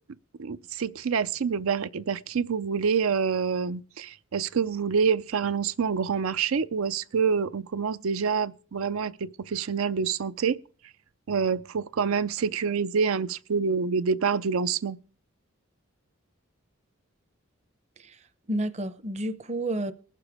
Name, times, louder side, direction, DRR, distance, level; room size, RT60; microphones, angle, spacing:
voice 1, 0.4-10.6 11.3-15.0, right 6 dB, 85° right, 0.5 m, -27 dB
voice 2, 18.0-19.9, right 1 dB, 30° right, 0.6 m, -31 dB
20.0 x 6.9 x 4.8 m
head